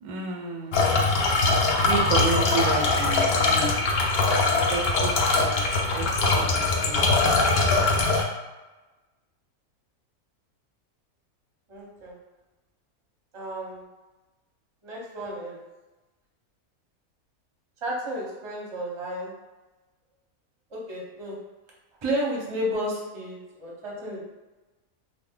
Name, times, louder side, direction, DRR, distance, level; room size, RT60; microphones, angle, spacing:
voice 1, 0.0-0.8 1.9-3.8 4.2-5.6 5.9-6.1 6.4-7.0, right 4 dB, 90° right, 1 dB, 1.1 m, -31 dB
sound 1, 0.7-8.2, left 3 dB, 70° left, 0.5 m, -22 dB
voice 2, 11.7-12.2 13.3-13.9 14.8-15.6 17.8-19.3 20.7-21.4 22.0-24.2, equal, 30° right, -4 dB, 0.6 m, -32 dB
2.7 x 2.5 x 3.6 m, 1.1 s
omnidirectional pair, 1.5 m